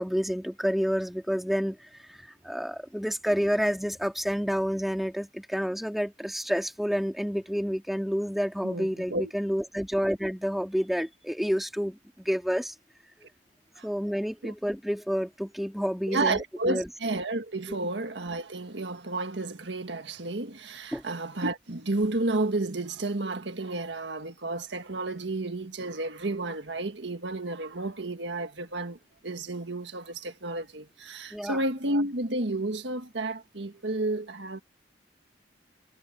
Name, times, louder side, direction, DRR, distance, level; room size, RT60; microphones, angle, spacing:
voice 1, 0.0-12.7 13.8-16.9 20.9-21.0 31.3-31.6, equal, ahead, 2.1 m, -29 dB
voice 2, 8.6-9.3 13.7-13.9 14.4-14.5 16.1-29.0 29.2-34.6, right 2 dB, 65° right, 1.7 m, -31 dB
head